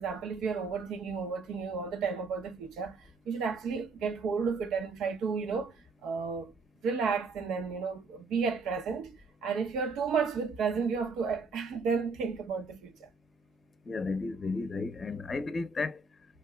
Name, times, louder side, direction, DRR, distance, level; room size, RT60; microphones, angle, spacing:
voice 1, 0.0-5.7 6.0-6.5 6.8-9.1 9.4-13.1, right 5 dB, 85° right, 0.8 m, -32 dB
voice 2, 13.9-16.0, left 3 dB, 35° left, 0.6 m, -33 dB
4.5 x 2.8 x 2.2 m
cardioid pair, 90°, 0 cm